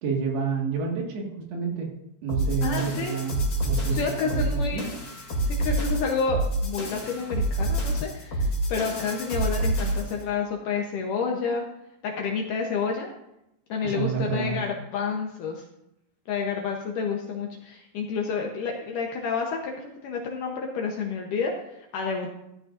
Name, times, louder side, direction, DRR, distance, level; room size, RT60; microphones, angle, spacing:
voice 1, 0.0-1.9 2.2-3.4 3.6-4.8 13.8-14.6, right 6 dB, 75° right, 0 dB, 3.9 m, -29 dB
sound 1, 2.3-10.2, right 1 dB, 35° left, 3.1 m, -27 dB
voice 2, 2.6-3.2 3.9-4.9 5.4-11.6 12.0-13.1 13.7-15.6 16.3-22.3, left 5 dB, 70° left, 1 dB, 2.1 m, -29 dB
14.0 x 12.5 x 2.6 m, 0.84 s
omnidirectional pair, 4.7 m